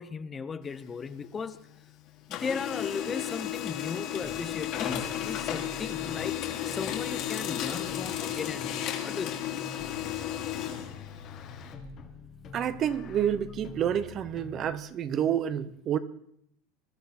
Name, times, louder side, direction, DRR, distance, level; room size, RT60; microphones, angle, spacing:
voice 1, 0.0-1.6 2.3-6.4 6.6-9.4, left 5 dB, 20° left, 0.6 m, -36 dB
Printer, 0.6-1.9 2.2-11.7, left 11 dB, 50° left, 3.1 m, -34 dB
sound 1, 4.2-14.7, left 4 dB, 35° left, 1.6 m, -45 dB
voice 2, 12.5-16.0, right 9 dB, 35° right, 0.8 m, -29 dB
21.0 x 12.5 x 4.2 m
supercardioid pair, 140°, 0 cm